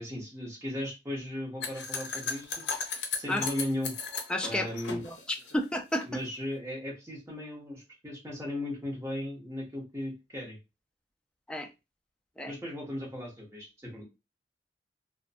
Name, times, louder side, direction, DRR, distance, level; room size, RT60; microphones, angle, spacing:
voice 1, 0.0-2.6 3.1-3.9 4.4-5.0 6.0-10.6 12.5-14.0, left 1 dB, 15° right, 0.8 m, -36 dB
sound 1, 1.6-6.0, left 5 dB, 75° left, 0.6 m, -36 dB
voice 2, 4.3-5.2 5.5-6.1 11.5-11.7 12.4-12.5, left 1 dB, 5° left, 0.3 m, -31 dB
2.5 x 2.1 x 2.5 m
head